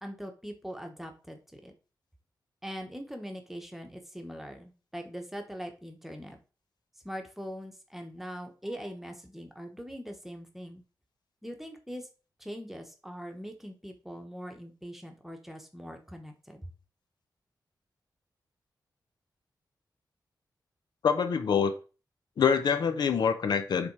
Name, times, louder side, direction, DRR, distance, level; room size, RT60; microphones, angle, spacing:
voice 1, 0.0-1.7 2.6-6.4 7.0-10.8 11.4-12.1 12.4-16.7, equal, 5° right, 1.1 m, -42 dB
voice 2, 21.0-21.8 22.4-23.9, left 6 dB, 75° left, 0.7 m, -25 dB
6.9 x 3.6 x 4.7 m
wide cardioid pair, 150°, 7 cm